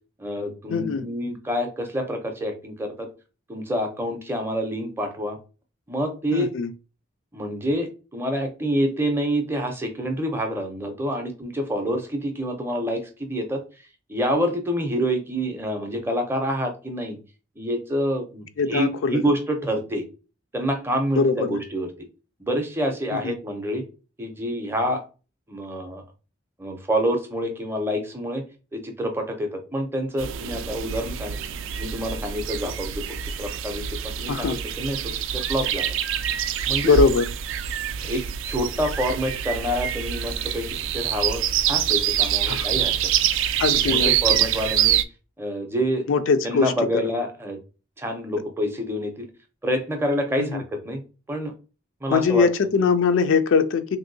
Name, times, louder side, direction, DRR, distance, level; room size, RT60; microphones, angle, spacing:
voice 1, 0.2-3.1 3.5-5.4 5.9-6.5 7.3-13.6 14.1-17.2 17.6-20.0 20.5-21.9 22.4-23.8 24.2-25.0 25.5-26.0 26.6-28.4 28.7-31.4 31.8-33.0 33.4-35.9 36.7-36.9 38.0-40.7 40.9-42.9 43.7-45.0 45.4-46.1 46.4-47.6 48.0-49.3 49.6-51.0 51.3-51.5 52.0-52.5, equal, 10° right, 0.5 m, -27 dB
voice 2, 0.7-1.0 6.3-6.7 18.6-19.2 21.2-21.6 23.1-23.3 34.3-34.6 36.8-37.3 42.5-42.7 43.6-44.2 46.1-46.7 50.4-50.6 52.1-54.0, left 5 dB, 80° left, 0.3 m, -21 dB
sound 1, 30.2-45.0, right 10 dB, 80° right, 0.3 m, -25 dB
3.3 x 2.6 x 2.6 m
head